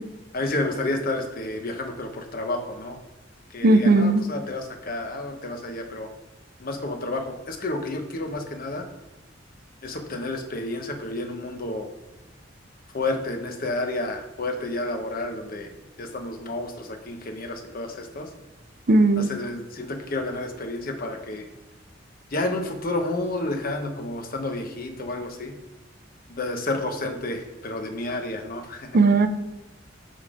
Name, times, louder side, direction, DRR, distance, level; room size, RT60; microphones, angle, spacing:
voice 1, 0.3-3.0 3.5-6.1 6.6-8.9 9.8-11.9 12.9-15.7 16.0-18.3 19.1-21.5 22.3-25.5 26.3-29.0, left 2 dB, 50° left, 4 dB, 1.0 m, -30 dB
voice 2, 3.6-4.2 18.9-19.3 28.9-29.3, right 2 dB, 50° right, 9 dB, 0.5 m, -17 dB
7.3 x 3.6 x 4.9 m, 1.0 s
head